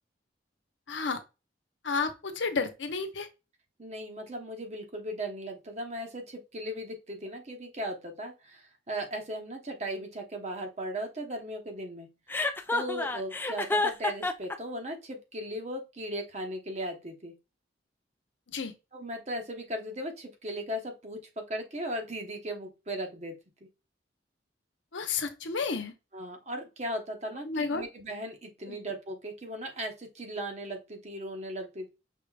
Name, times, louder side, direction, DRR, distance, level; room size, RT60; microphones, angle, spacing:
voice 1, 0.9-1.2 1.8-3.3 18.5-18.7 24.9-25.9 27.4-27.8 28.7-28.8, left 4 dB, 85° left, 0.8 m, -31 dB
voice 2, 3.8-12.1 12.7-17.3 18.9-23.4 26.1-31.9, right 1 dB, 40° right, 1.0 m, -37 dB
Chuckle chortle, 12.3-14.6, left 3 dB, 10° left, 0.4 m, -29 dB
5.6 x 3.4 x 2.4 m
head